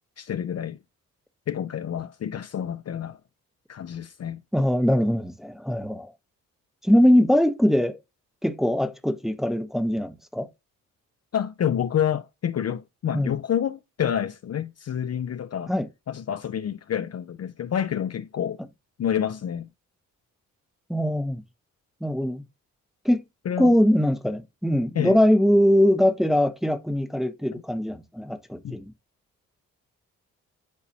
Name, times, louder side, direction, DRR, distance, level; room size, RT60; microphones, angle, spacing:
voice 1, 0.2-0.8 1.5-3.2 3.7-4.4 11.3-15.7 16.1-18.6 19.0-19.7 23.5-23.7 24.9-25.2 28.6-28.8, left 9 dB, 45° left, 0.5 m, -28 dB
voice 2, 4.5-6.1 6.8-8.0 8.4-10.5 13.1-13.3 15.7-15.9 20.9-21.4 22.0-22.4 23.0-23.2 23.6-28.9, equal, ahead, 0.8 m, -22 dB
8.6 x 4.0 x 2.7 m
hypercardioid pair, 45°, 37 cm